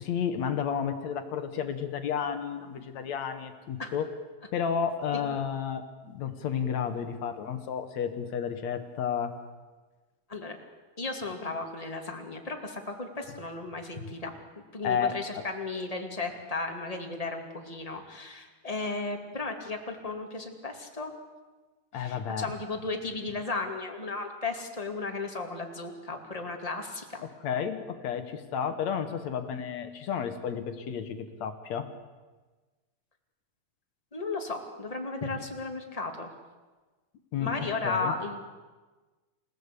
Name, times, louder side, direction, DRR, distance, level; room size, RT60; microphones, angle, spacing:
voice 1, 0.0-4.1 4.5-9.3 14.8-15.4 21.9-22.5 27.2-31.9 37.3-37.5 37.8-38.1, left 7 dB, 60° left, 8 dB, 2.2 m, -32 dB
voice 2, 11.0-14.3 14.7-21.1 21.9-27.2 34.1-36.3 37.4-38.4, left 3 dB, 15° left, 3 dB, 1.7 m, -35 dB
28.5 x 16.0 x 8.4 m, 1.3 s
omnidirectional pair, 4.3 m